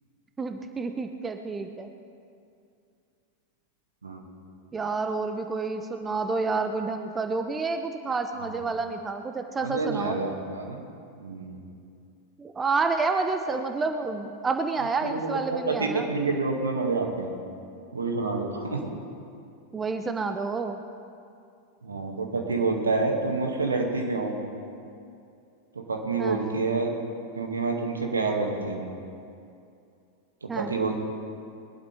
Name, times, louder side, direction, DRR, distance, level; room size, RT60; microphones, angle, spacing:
voice 1, 0.4-1.9 4.7-10.2 12.4-16.1 19.7-20.8 26.2-26.5 30.5-30.7, right 4 dB, 15° right, 6 dB, 0.7 m, -29 dB
voice 2, 9.6-10.8 11.2-11.6 13.5-13.6 15.0-17.4 17.9-18.8 21.8-24.4 25.8-26.9 27.4-28.9 30.4-31.0, right 3 dB, 75° right, 2 dB, 2.0 m, -28 dB
21.5 x 12.0 x 3.4 m, 2.5 s
figure-of-eight pair, 90°, 0 cm